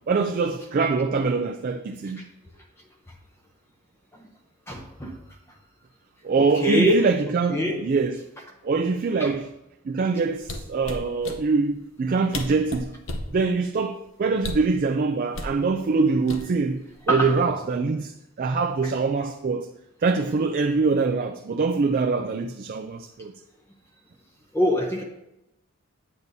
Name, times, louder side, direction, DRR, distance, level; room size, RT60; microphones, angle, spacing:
voice 1, 0.1-2.2 6.2-8.2 8.6-9.5 9.8-12.9 13.3-19.7 20.0-23.3, right 4 dB, 40° right, 0.3 m, -24 dB
voice 2, 4.7-5.1 6.4-7.0 7.5-7.8 9.2-9.3 17.1-17.3 24.5-25.0, equal, 10° left, 0.7 m, -23 dB
sound 1, 10.4-11.4 12.1-12.2 12.3-13.3 14.4-14.7 15.3-15.6 16.3-16.7 17.1-17.4, left 2 dB, 65° left, 0.8 m, -33 dB
8.5 x 8.2 x 2.7 m
head